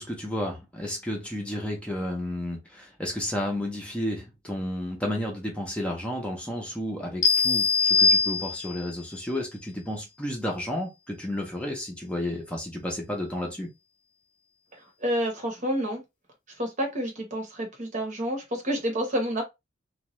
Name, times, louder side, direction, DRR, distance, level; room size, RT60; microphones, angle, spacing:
voice 1, 0.0-13.7, left 1 dB, 5° left, 0.7 m, -32 dB
sound 1, 7.2-8.9, left 4 dB, 45° left, 0.5 m, -22 dB
voice 2, 14.7-16.0 16.6-19.4, equal, 40° right, 1.0 m, -29 dB
2.5 x 2.4 x 3.1 m
head